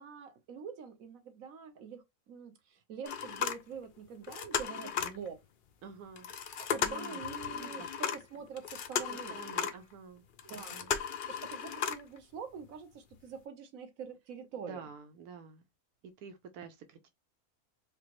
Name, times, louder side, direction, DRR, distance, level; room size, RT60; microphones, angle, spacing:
voice 1, 0.0-5.4 6.6-9.4 10.4-10.8 11.3-14.9, right 6 dB, 65° right, 1.3 m, -45 dB
sound 1, 3.0-4.0 4.2-5.3 6.2-9.9 10.4-12.2 12.6-12.7 13.1-13.2, left 7 dB, 85° left, 0.4 m, -36 dB
voice 2, 5.8-7.9 9.3-10.2 10.5-10.9 14.7-15.6 16.2-17.1, right 6 dB, 90° right, 1.2 m, -49 dB
4.8 x 2.1 x 3.0 m
omnidirectional pair, 1.6 m